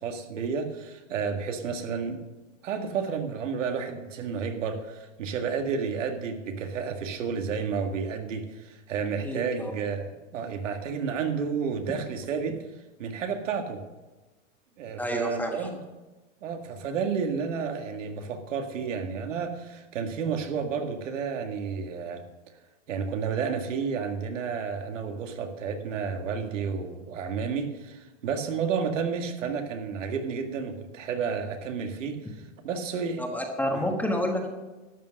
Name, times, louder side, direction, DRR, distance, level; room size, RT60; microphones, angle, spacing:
voice 1, 0.0-2.2 2.6-12.6 13.0-13.8 14.8-15.8 16.4-22.2 22.9-33.2 33.7-33.9, right 6 dB, 80° right, 5 dB, 1.9 m, -31 dB
voice 2, 9.2-9.7 15.0-15.7 33.2-34.5, left 1 dB, 5° left, 2 dB, 1.3 m, -29 dB
12.5 x 7.6 x 6.5 m, 1.1 s
supercardioid pair, 140°, 37 cm